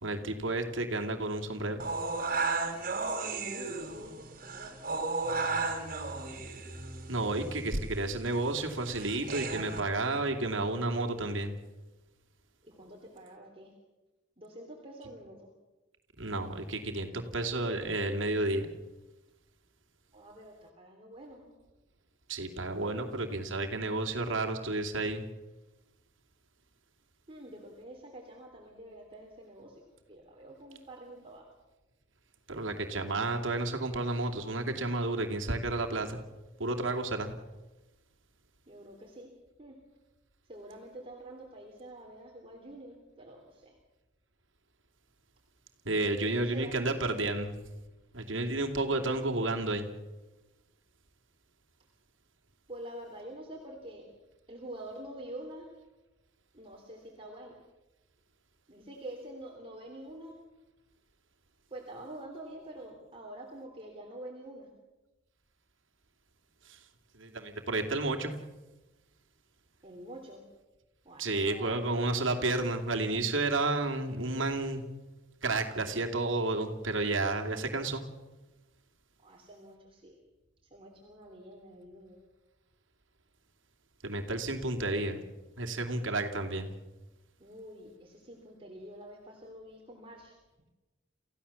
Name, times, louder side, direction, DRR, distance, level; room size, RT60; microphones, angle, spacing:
voice 1, 0.0-1.8 7.1-11.5 15.0-15.1 16.2-18.7 22.3-25.2 32.5-36.2 36.6-37.3 45.8-47.6 48.1-49.9 66.7-66.8 67.1-68.3 71.2-74.8 75.4-78.0 84.0-85.2 85.6-86.7, right 2 dB, 85° right, 3 dB, 2.7 m, -31 dB
sound 1, 1.8-9.8, right 3 dB, 45° right, 3.7 m, -35 dB
voice 2, 3.3-4.8 12.6-13.7 14.4-15.5 20.1-21.5 27.3-29.8 30.1-31.5 38.7-39.3 39.6-39.8 40.4-43.7 46.0-47.0 52.7-54.1 54.5-55.7 56.5-57.6 58.7-60.3 61.7-64.7 69.8-70.4 71.0-71.8 79.2-80.2 80.7-82.2 87.4-90.3, right 1 dB, 30° right, -1 dB, 3.3 m, -47 dB
29.0 x 15.5 x 7.1 m, 1.1 s
head